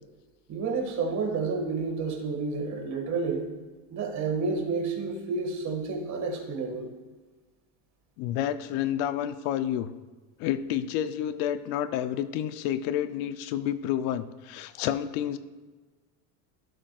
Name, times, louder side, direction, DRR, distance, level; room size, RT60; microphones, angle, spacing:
voice 1, 0.5-3.5 3.9-6.9, right 4 dB, 35° right, 2 dB, 1.8 m, -30 dB
voice 2, 8.2-9.9 10.4-15.4, left 11 dB, 70° left, 11 dB, 0.7 m, -29 dB
15.5 x 7.8 x 2.4 m, 1.3 s
cardioid pair, 145°, 46 cm